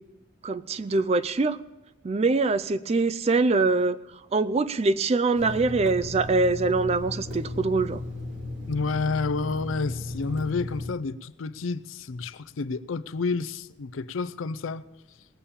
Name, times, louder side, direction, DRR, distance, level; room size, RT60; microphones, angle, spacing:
voice 1, 0.4-1.6 2.0-4.0 4.3-8.0, right 3 dB, 30° right, 15 dB, 0.4 m, -23 dB
Water tap faucet / Sink (filling or washing), 5.3-10.9, left 2 dB, 65° right, 2.2 m, -35 dB
voice 2, 8.7-14.8, left 4 dB, 80° left, 11 dB, 0.5 m, -30 dB
19.0 x 7.3 x 6.9 m, 1.0 s
head